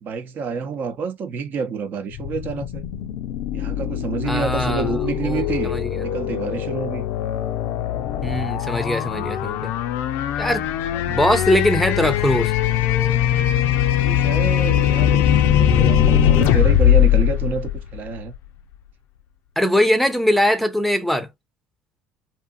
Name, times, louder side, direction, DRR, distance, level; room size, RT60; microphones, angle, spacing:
voice 1, 0.0-2.8 3.5-7.1 10.9-11.2 14.0-18.3, right 5 dB, 50° right, 0.7 m, -28 dB
sound 1, 2.1-18.3, left 10 dB, 70° left, 0.5 m, -21 dB
voice 2, 4.2-5.9 8.2-9.7 10.4-10.6 11.1-12.5 19.6-21.3, equal, 5° left, 0.6 m, -21 dB
2.7 x 2.6 x 2.2 m
hypercardioid pair, 75°, 4 cm